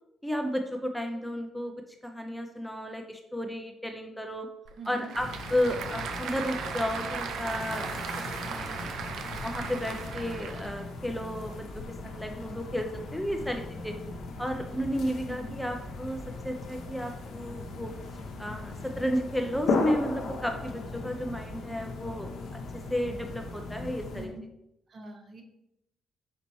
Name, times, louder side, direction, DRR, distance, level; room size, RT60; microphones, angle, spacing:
voice 1, 0.2-1.8 2.0-4.5 4.9-9.0 9.4-13.9 14.4-17.9 18.4-22.3 22.7-24.3, equal, 5° left, 4 dB, 0.4 m, -33 dB
Applause / Crowd, 4.6-10.8, right 6 dB, 75° right, 0.4 m, -37 dB
voice 2, 4.8-5.1 15.3-15.6 24.1-24.5 24.9-25.4, right 2 dB, 45° right, 4 dB, 0.7 m, -43 dB
sound 1, 5.1-24.3, left 3 dB, 75° left, 0.8 m, -37 dB
4.3 x 4.1 x 3.0 m, 0.85 s
cardioid pair, 90°, 0 cm